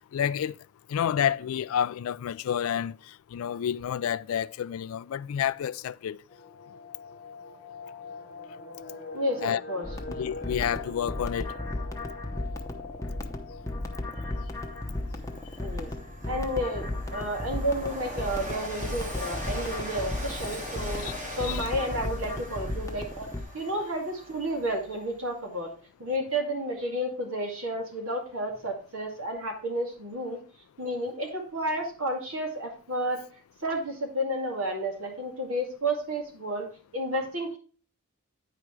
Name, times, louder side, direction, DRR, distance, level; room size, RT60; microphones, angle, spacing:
voice 1, 0.1-0.5 0.9-2.9 3.3-6.2 9.4-9.6 10.2-11.5 21.0-21.1 21.4-21.7, left 9 dB, 75° left, 0.3 m, -29 dB
sound 1, 6.3-17.1 17.4-17.5 17.8-18.0 18.5-18.9 19.4-19.5 19.7-20.2 20.5-20.6, left 3 dB, 45° left, 0.9 m, -45 dB
voice 2, 9.1-9.8 15.6-15.9 16.3-21.0 21.4-23.3 23.5-25.7 26.0-30.4 30.8-33.2 33.6-36.7 36.9-37.6, right 1 dB, 75° right, 2.2 m, -31 dB
sound 2, 9.8-23.4, left 1 dB, 15° left, 0.8 m, -35 dB
Train, 14.4-14.5 14.8-25.3, equal, 40° right, 2.3 m, -41 dB
9.4 x 4.9 x 4.6 m
head